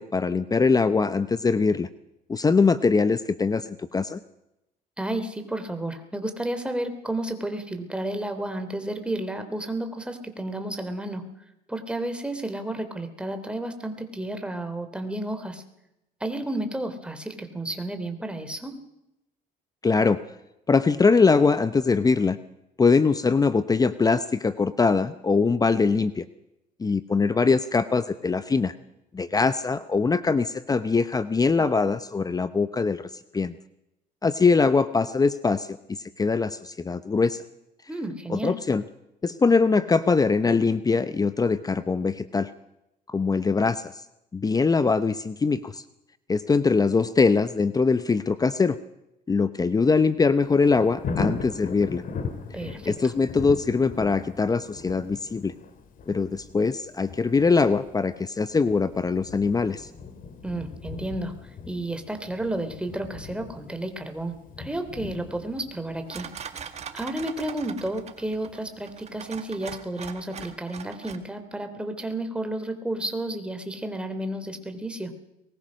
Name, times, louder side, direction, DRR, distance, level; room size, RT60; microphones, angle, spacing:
voice 1, 0.0-1.9 2.3-4.2 19.8-20.2 20.7-22.4 22.8-26.2 26.8-28.7 29.1-33.1 33.3-33.5 34.2-35.8 36.2-37.4 38.3-38.8 39.2-42.5 43.1-43.9 44.3-45.8 46.3-48.8 49.3-52.0 52.9-55.5 56.1-59.9, left 4 dB, 20° left, 13 dB, 0.8 m, -22 dB
voice 2, 5.0-11.2 11.7-15.6 16.2-18.7 37.9-38.5 52.5-53.1 60.4-61.3 61.6-66.3 66.9-75.1, right 1 dB, 5° right, 7 dB, 3.3 m, -32 dB
Thunder, 50.4-69.2 69.6-69.7, left 4 dB, 55° left, 2.9 m, -39 dB
sound 1, 66.1-71.2, right 7 dB, 40° right, 2.0 m, -41 dB
22.5 x 20.5 x 6.4 m, 0.87 s
cardioid pair, 110°, 17 cm